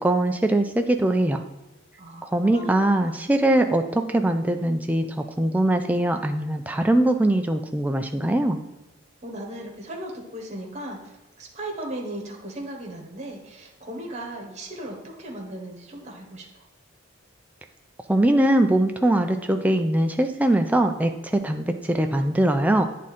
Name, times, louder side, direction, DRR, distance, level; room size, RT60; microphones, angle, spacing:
voice 1, 0.0-1.4 2.2-8.6 18.1-22.8, right 1 dB, 5° right, 5 dB, 0.4 m, -22 dB
voice 2, 2.0-2.7 3.0-3.2 9.2-16.6, right 1 dB, 30° right, 0 dB, 1.2 m, -37 dB
9.1 x 3.7 x 4.2 m, 1.1 s
head